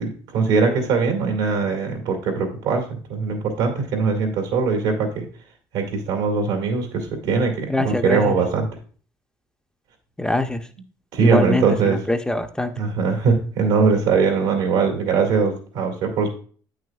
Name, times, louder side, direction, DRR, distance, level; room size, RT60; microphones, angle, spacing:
voice 1, 0.0-5.3 5.7-8.7 11.1-12.0 12.8-16.3, right 5 dB, 85° right, 2 dB, 2.0 m, -21 dB
voice 2, 7.7-8.3 10.2-10.6 11.2-12.7, left 2 dB, 10° left, 7 dB, 0.6 m, -23 dB
8.5 x 6.3 x 2.3 m, 0.42 s
supercardioid pair, 75°, 9 cm